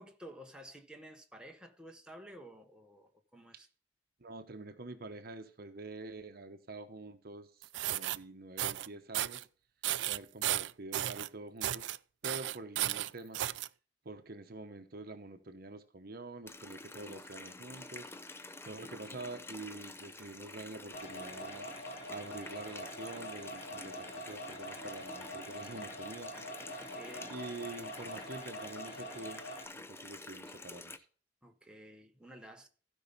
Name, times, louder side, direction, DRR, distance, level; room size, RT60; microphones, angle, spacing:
voice 1, 0.0-3.7 26.8-27.3 31.4-32.7, equal, 5° right, 1.2 m, -52 dB
voice 2, 4.2-9.5 10.1-11.9 12.2-13.4 14.0-18.1 18.6-21.7 22.1-26.8 27.3-29.4 29.8-31.0, right 2 dB, 55° right, 0.9 m, -46 dB
sound 1, 7.6-8.2 8.6-8.9 9.1-9.4 9.8-11.3 11.6-12.0 12.2-13.7, right 13 dB, 75° right, 0.3 m, -34 dB
Water tap faucet, 16.5-31.0, left 2 dB, 15° left, 0.7 m, -49 dB
sound 2, 20.9-29.6, equal, 55° left, 3.3 m, -45 dB
15.5 x 5.5 x 4.0 m
head